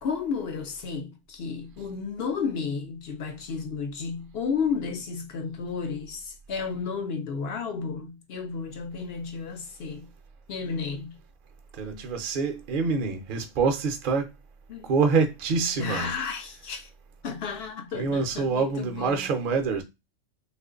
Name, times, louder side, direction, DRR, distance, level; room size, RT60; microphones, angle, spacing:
voice 1, 0.0-10.1 10.5-11.2 14.7-14.9 15.8-16.9 17.2-19.4, left 5 dB, 65° left, 0.7 m, -32 dB
voice 2, 11.8-14.3 14.8-16.1 17.9-19.8, right 4 dB, 50° right, 0.7 m, -26 dB
3.0 x 2.5 x 3.7 m
omnidirectional pair, 1.3 m